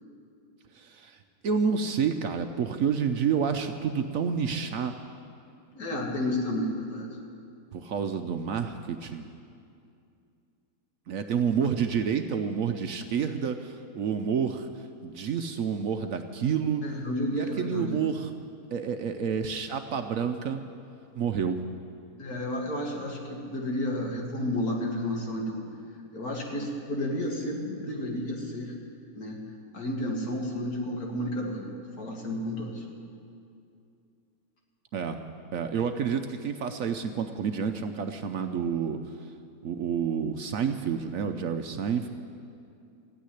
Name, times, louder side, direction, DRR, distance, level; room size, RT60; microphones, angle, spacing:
voice 1, 0.8-1.2 1.4-4.9 7.7-9.3 11.1-14.7 15.0-16.8 17.3-18.3 18.7-20.6 21.2-21.6 34.9-35.2 35.5-39.0 39.6-42.1, right 7 dB, 65° right, 7 dB, 0.9 m, -29 dB
voice 2, 5.7-7.1 16.8-18.0 22.2-25.6 26.1-28.7 29.2-29.4 29.7-32.8, left 1 dB, 65° left, 0 dB, 2.5 m, -31 dB
14.0 x 9.3 x 9.9 m, 2.5 s
omnidirectional pair, 1.8 m